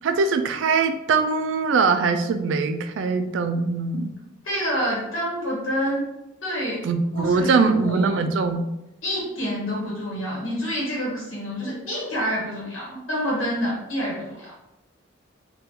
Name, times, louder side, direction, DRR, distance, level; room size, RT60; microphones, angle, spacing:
voice 1, 0.0-4.1 6.8-8.6, right 4 dB, 70° right, 9 dB, 0.3 m, -22 dB
voice 2, 4.4-6.0 6.4-6.8 7.1-8.2 9.0-14.5, equal, 85° left, -5 dB, 1.1 m, -27 dB
2.8 x 2.3 x 3.5 m, 0.89 s
head